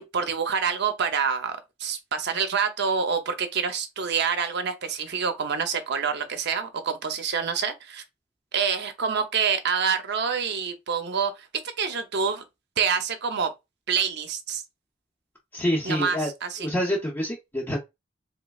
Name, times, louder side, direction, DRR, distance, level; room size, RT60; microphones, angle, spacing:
voice 1, 0.0-8.0 8.5-11.5 11.8-12.4 12.8-13.5 13.9-14.6 15.8-16.7, right 6 dB, 60° right, 0.7 m, -27 dB
voice 2, 15.5-16.3 16.6-17.8, equal, 10° left, 0.7 m, -27 dB
3.3 x 3.1 x 2.3 m
head